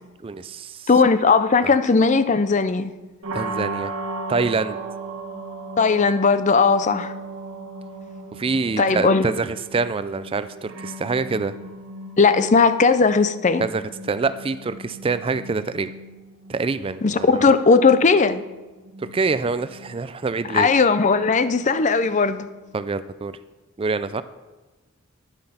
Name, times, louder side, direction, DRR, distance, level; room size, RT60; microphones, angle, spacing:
voice 1, 0.2-0.9 1.6-1.7 3.3-3.9 4.3-4.8 8.3-11.5 13.6-15.9 16.5-17.3 19.0-20.7 22.7-23.4 23.8-24.2, right 4 dB, 25° right, 0.3 m, -26 dB
voice 2, 0.9-2.9 5.8-7.1 8.8-9.3 12.2-13.7 17.0-18.4 20.5-22.5, left 4 dB, 35° left, 0.5 m, -17 dB
sound 1, 3.2-23.0, right 2 dB, 90° right, 1.9 m, -37 dB
9.8 x 8.8 x 5.7 m
head